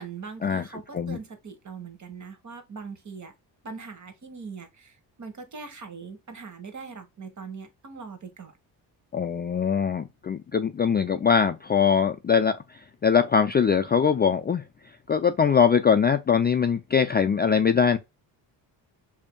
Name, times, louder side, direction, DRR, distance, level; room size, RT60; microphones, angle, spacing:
voice 1, 0.0-3.3 3.6-8.5, right 5 dB, 40° right, 1.3 m, -41 dB
voice 2, 9.1-14.6 15.1-18.0, left 6 dB, 25° left, 0.3 m, -22 dB
4.9 x 2.8 x 2.2 m
cardioid pair, 75°, 44 cm